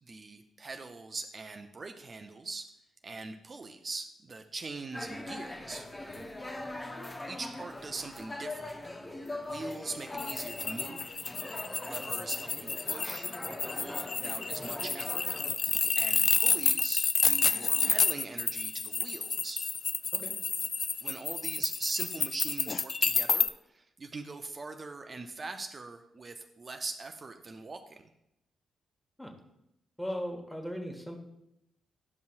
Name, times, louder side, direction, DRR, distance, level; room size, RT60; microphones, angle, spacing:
voice 1, 0.0-2.7 3.0-5.9 7.3-8.7 9.1-11.0 11.8-15.2 16.0-19.6 21.0-28.0, right 3 dB, 40° right, 5 dB, 0.6 m, -42 dB
sound 1, 4.9-15.6, left 2 dB, 25° left, 0.9 m, -41 dB
sound 2, 10.2-23.5, left 5 dB, 45° left, 0.3 m, -29 dB
voice 2, 30.0-31.2, equal, 5° left, 3 dB, 1.4 m, -38 dB
10.5 x 5.4 x 2.5 m, 0.82 s
hypercardioid pair, 40°, 0 cm